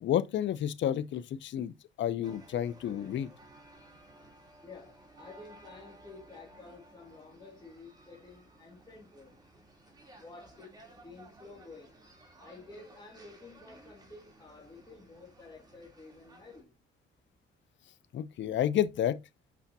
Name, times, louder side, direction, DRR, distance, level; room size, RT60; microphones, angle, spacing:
voice 1, 0.0-3.3 18.1-19.2, left 10 dB, 70° left, 0.8 m, -30 dB
sound 1, 2.2-16.6, right 1 dB, 20° right, 3.2 m, -57 dB
voice 2, 4.6-9.4 10.2-10.7 11.0-12.0 12.4-16.7, left 3 dB, 20° left, 2.4 m, -51 dB
8.4 x 5.7 x 2.8 m
cardioid pair, 90°, 20 cm